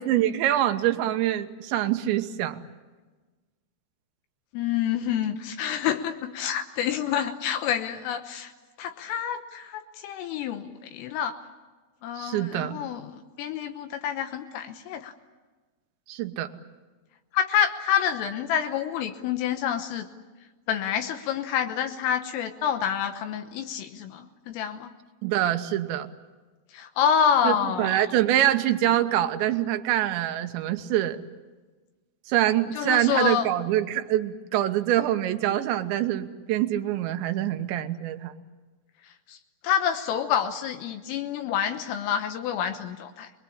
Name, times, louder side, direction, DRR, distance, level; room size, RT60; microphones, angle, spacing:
voice 1, 0.0-2.6 12.2-12.8 16.1-16.5 25.2-26.1 27.4-31.2 32.3-38.3, right 12 dB, 75° right, 8 dB, 3.1 m, -25 dB
voice 2, 4.5-8.5 8.8-11.4 12.0-15.1 17.3-20.1 20.7-24.9 26.7-28.0 32.8-33.5 39.3-39.4 39.6-43.3, left 8 dB, 80° left, 6 dB, 3.7 m, -28 dB
27.0 x 22.0 x 8.6 m, 1.3 s
omnidirectional pair, 5.9 m